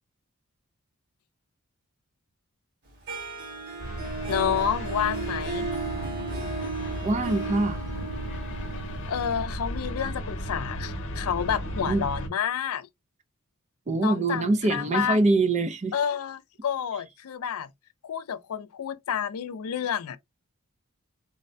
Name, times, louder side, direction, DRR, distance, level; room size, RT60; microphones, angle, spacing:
Harp, 3.1-10.0, right 3 dB, 50° right, 1.8 m, -35 dB
sound 1, 3.8-12.3, equal, 60° left, 0.8 m, -35 dB
voice 1, 4.3-5.7 9.1-12.9 14.0-15.2 15.9-17.7 18.0-20.2, left 8 dB, 80° left, 0.4 m, -29 dB
voice 2, 7.0-7.9 11.9-12.1 13.9-15.9, right 2 dB, 30° right, 0.4 m, -24 dB
3.8 x 2.1 x 2.6 m
head